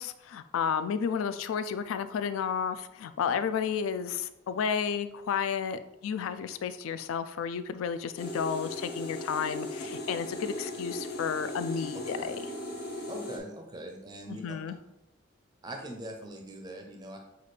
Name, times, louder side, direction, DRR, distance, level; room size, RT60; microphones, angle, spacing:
voice 1, 0.0-12.4 14.4-14.8, left 7 dB, 80° left, 12 dB, 0.3 m, -32 dB
sound 1, 8.2-13.4, left 1 dB, 50° left, 0.7 m, -38 dB
voice 2, 13.1-14.4 15.6-17.2, right 1 dB, 20° right, 3 dB, 0.4 m, -41 dB
5.9 x 2.4 x 3.2 m, 0.89 s
head